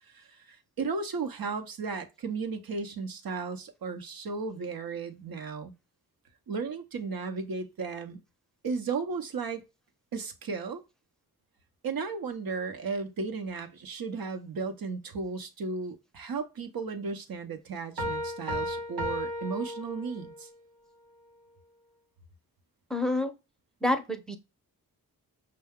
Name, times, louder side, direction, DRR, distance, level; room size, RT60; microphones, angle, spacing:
voice 1, 0.0-5.7 6.5-8.2 8.6-9.6 10.1-10.8 11.8-20.5, right 4 dB, 70° right, 0.8 m, -35 dB
sound 1, 18.0-20.5, equal, 85° right, 1.0 m, -34 dB
voice 2, 22.9-23.3 23.8-24.4, left 1 dB, ahead, 0.6 m, -28 dB
5.5 x 2.2 x 3.5 m
wide cardioid pair, 85°, 37 cm